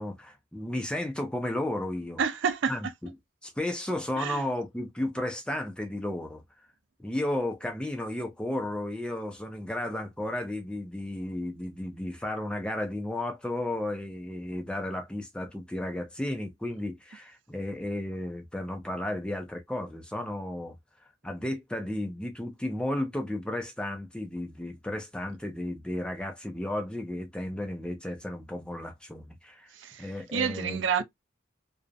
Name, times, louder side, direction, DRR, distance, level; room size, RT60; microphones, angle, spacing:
voice 1, 0.0-2.2 2.7-2.8 3.4-6.4 7.0-20.8 21.2-29.7 30.0-30.8, left 1 dB, 5° left, 0.4 m, -33 dB
voice 2, 2.2-2.9 4.2-4.4 29.7-31.0, right 6 dB, 65° right, 0.4 m, -29 dB
2.6 x 2.0 x 2.3 m
head